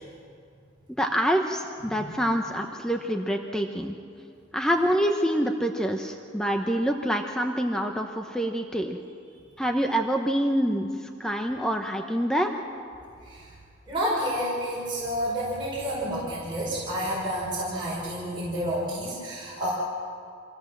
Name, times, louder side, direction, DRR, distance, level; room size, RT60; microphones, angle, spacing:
voice 1, 1.0-3.9 4.5-9.0 9.6-10.9 11.2-12.5, equal, 5° left, 3 dB, 0.9 m, -26 dB
voice 2, 13.9-19.7, equal, 25° right, -8 dB, 5.5 m, -30 dB
26.0 x 16.5 x 7.4 m, 2.3 s
head